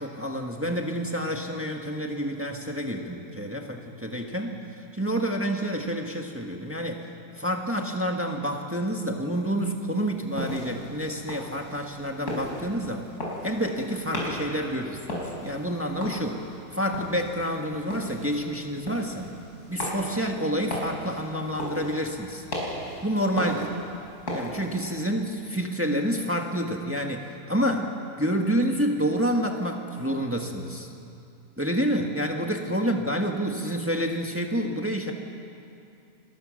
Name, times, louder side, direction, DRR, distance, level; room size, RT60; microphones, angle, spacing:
voice 1, 0.0-4.6 4.9-7.1 7.4-13.1 13.4-16.4 16.7-19.3 19.7-22.4 23.0-23.7 24.3-27.9 28.2-30.9 31.6-35.1, equal, 10° right, 2 dB, 1.6 m, -28 dB
sound 1, 10.1-25.0, left 1 dB, 75° left, 5.7 m, -36 dB
29.5 x 21.0 x 6.5 m, 2.6 s
omnidirectional pair, 1.7 m